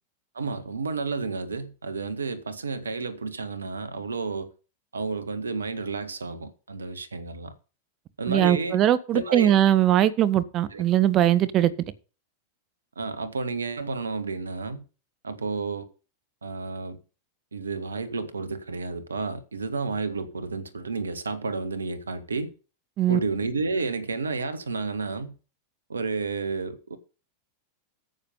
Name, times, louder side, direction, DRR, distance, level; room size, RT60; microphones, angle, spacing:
voice 1, 0.3-4.5 4.9-7.5 8.2-8.8 9.1-9.6 10.7-10.8 13.0-14.9 15.2-15.9 16.4-17.0 17.5-22.5 23.1-25.4 25.9-27.0, right 4 dB, 75° right, 1.4 m, -31 dB
voice 2, 8.3-11.7 23.0-23.2, right 12 dB, 35° right, 1.0 m, -20 dB
9.5 x 7.1 x 5.6 m
figure-of-eight pair, 90°, 0 cm